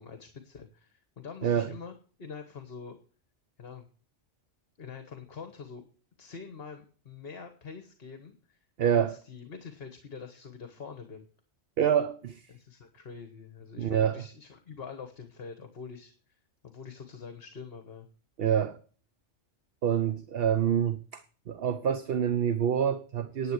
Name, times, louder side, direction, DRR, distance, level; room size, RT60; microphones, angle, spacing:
voice 1, 0.0-3.0 3.6-3.9 4.8-5.8 6.2-8.6 8.9-11.3 12.5-16.1 16.6-18.1, left 5 dB, 55° left, 1.4 m, -45 dB
voice 2, 1.4-1.7 8.8-9.1 11.8-12.4 13.8-14.2 18.4-18.8 19.8-21.2 21.5-23.5, right 8 dB, 60° right, 0.9 m, -26 dB
10.5 x 7.9 x 6.4 m
omnidirectional pair, 1.2 m